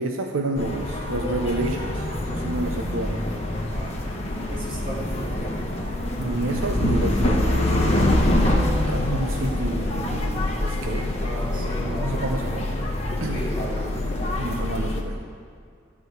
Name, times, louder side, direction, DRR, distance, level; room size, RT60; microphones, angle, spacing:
voice 1, 0.0-3.3 6.2-8.4 8.8-11.1 11.6-12.7 13.2-13.5 14.4-15.2, right 2 dB, 80° right, 3 dB, 0.7 m, -30 dB
sound 1, 0.6-15.0, left 1 dB, 30° left, 1.1 m, -25 dB
voice 2, 3.7-5.6 11.1-12.6 13.3-14.0, right 1 dB, 45° right, -5 dB, 2.6 m, -36 dB
14.0 x 4.8 x 7.9 m, 2.2 s
head